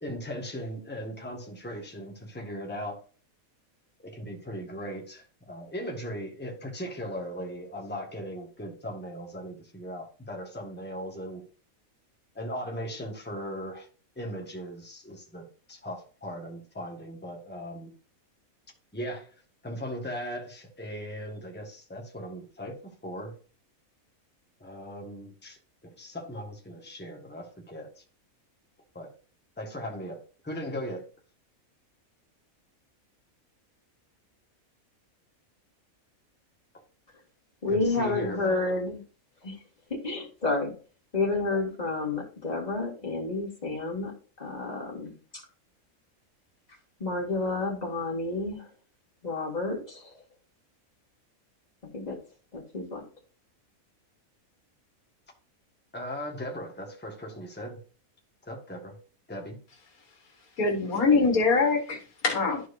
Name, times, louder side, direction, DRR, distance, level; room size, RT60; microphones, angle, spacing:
voice 1, 0.0-3.0 4.0-11.4 12.3-13.9 14.2-17.9 18.9-19.3 19.6-23.3 24.6-28.0 28.9-29.1 29.6-31.1 37.7-38.6 55.9-57.8 58.5-59.0 59.3-59.6, equal, 5° left, 0 dB, 1.5 m, -38 dB
voice 2, 37.6-39.0 39.4-39.6 39.9-40.7 41.1-44.1 44.4-45.1 47.0-48.7 49.2-50.1 51.9-52.2 52.5-53.0, left 3 dB, 30° left, -2 dB, 2.5 m, -30 dB
voice 3, 60.6-62.7, left 4 dB, 90° left, 2 dB, 2.0 m, -24 dB
12.5 x 4.5 x 2.7 m, 0.38 s
omnidirectional pair, 1.5 m